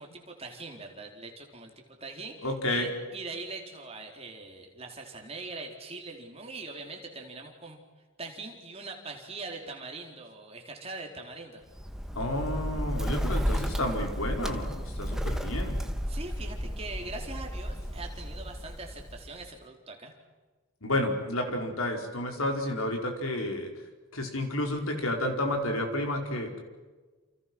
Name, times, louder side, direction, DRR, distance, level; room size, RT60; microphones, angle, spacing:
voice 1, 0.0-7.8 8.2-11.6 16.1-20.1, right 3 dB, 30° right, 2 dB, 4.2 m, -42 dB
voice 2, 2.4-2.9 12.1-15.8 20.8-23.7 24.1-26.6, left 1 dB, 85° left, 4 dB, 5.0 m, -31 dB
Bird, 11.7-19.5, equal, ahead, 1.4 m, -33 dB
29.0 x 29.0 x 6.3 m, 1.3 s
head